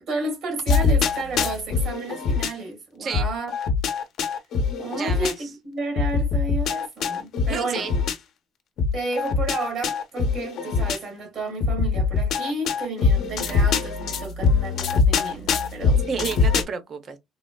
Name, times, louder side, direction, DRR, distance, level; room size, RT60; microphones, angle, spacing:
voice 1, 0.1-3.5 4.8-7.9 8.9-16.0, right 3 dB, 60° right, 2.0 m, -31 dB
sound 1, 0.7-2.5 3.1-5.3 6.0-8.2 8.8-11.0 11.6-16.6, left 5 dB, 65° left, 0.7 m, -23 dB
voice 2, 5.0-5.3 7.5-8.0 16.1-17.2, right 5 dB, 45° right, 0.7 m, -30 dB
3.7 x 2.1 x 2.2 m
cardioid pair, 110°, 0 cm